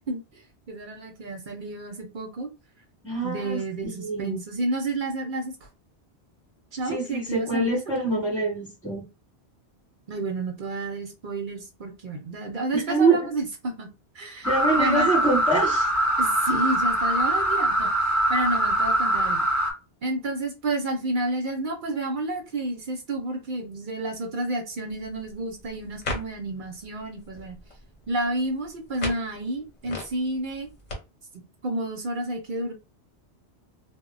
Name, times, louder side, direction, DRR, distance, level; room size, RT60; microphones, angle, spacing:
voice 1, 0.1-0.4 0.7-2.5 3.2-5.5 6.7-7.8 10.1-13.9 14.1-15.1 16.2-19.5 20.0-27.6 28.1-30.7 31.3-32.7, right 2 dB, 55° right, 0.7 m, -30 dB
voice 2, 3.0-4.4 6.9-9.0 12.7-13.2 14.4-15.9, right 3 dB, 5° left, 0.9 m, -25 dB
sound 1, 14.4-19.7, right 1 dB, 25° left, 0.4 m, -23 dB
sound 2, 24.9-31.0, left 1 dB, 45° left, 0.8 m, -39 dB
2.1 x 2.0 x 3.7 m
omnidirectional pair, 1.1 m